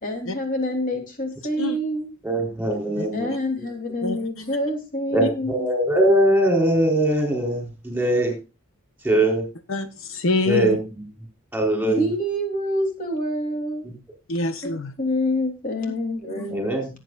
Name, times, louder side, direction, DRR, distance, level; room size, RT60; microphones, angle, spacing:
voice 1, 0.0-2.2 3.1-5.7 11.9-13.9 14.6-16.7, left 1 dB, 40° left, 3.4 m, -27 dB
voice 2, 2.2-3.3 3.6-3.7 5.1-8.3 9.0-9.4 10.5-11.0 11.5-12.1 13.8-13.9 16.5-16.9, right 1 dB, 10° right, 4.1 m, -21 dB
voice 3, 4.0-4.5 9.7-10.8 14.3-14.9 16.4-16.5, left 2 dB, 65° left, 1.0 m, -26 dB
17.5 x 8.7 x 2.6 m
head